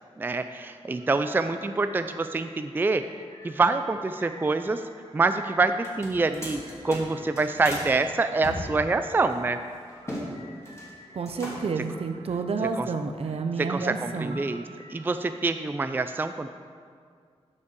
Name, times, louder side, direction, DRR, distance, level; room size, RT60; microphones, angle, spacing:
voice 1, 0.2-3.0 3.4-4.8 5.1-6.6 6.8-9.6 12.8-12.9 13.6-14.6 14.9-16.5, right 3 dB, 20° right, 9 dB, 0.3 m, -26 dB
sound 1, 0.8-15.8, equal, 85° right, 2.2 m, -52 dB
sound 2, 5.8-7.9 8.4-10.3 10.5-10.9 11.2-11.8, equal, 25° left, 2.7 m, -37 dB
voice 2, 11.1-14.4, right 4 dB, 65° right, 7 dB, 0.7 m, -30 dB
8.3 x 5.3 x 6.8 m, 2.1 s
wide cardioid pair, 90°, 11 cm